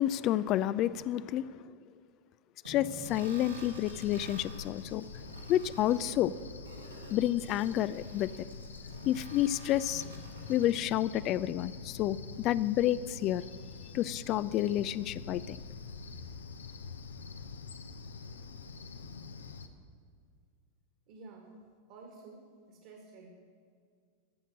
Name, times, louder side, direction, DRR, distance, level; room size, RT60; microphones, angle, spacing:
voice 1, 0.0-1.6 2.7-5.1 5.5-6.3 7.1-8.5 9.1-10.0 10.5-13.4 13.9-15.6, left 12 dB, 35° left, 0.3 m, -30 dB
sound 1, 2.6-10.6, right 1 dB, 80° right, 2.0 m, -49 dB
Cricket, 3.0-19.7, left 4 dB, 70° left, 0.8 m, -46 dB
voice 2, 21.1-21.6 21.9-23.3, right 3 dB, 45° right, 1.7 m, -52 dB
15.5 x 6.5 x 7.7 m
figure-of-eight pair, 90°, 0 cm